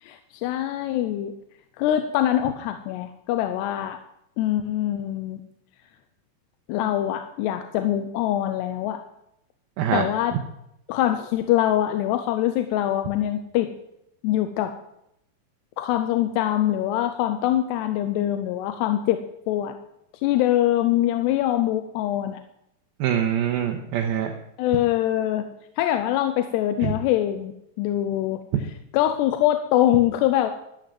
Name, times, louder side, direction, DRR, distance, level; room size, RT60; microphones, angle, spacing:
voice 1, 0.0-1.3 1.8-4.0 4.4-5.4 6.7-9.0 9.9-10.4 10.9-13.7 14.2-14.8 15.8-19.8 20.2-22.4 24.6-25.5 25.8-28.4 28.9-30.5, left 12 dB, 90° left, 8 dB, 2.9 m, -23 dB
voice 2, 23.0-24.3 26.8-26.9, right 9 dB, 75° right, 3 dB, 2.6 m, -24 dB
12.5 x 9.0 x 7.6 m, 0.80 s
omnidirectional pair, 4.8 m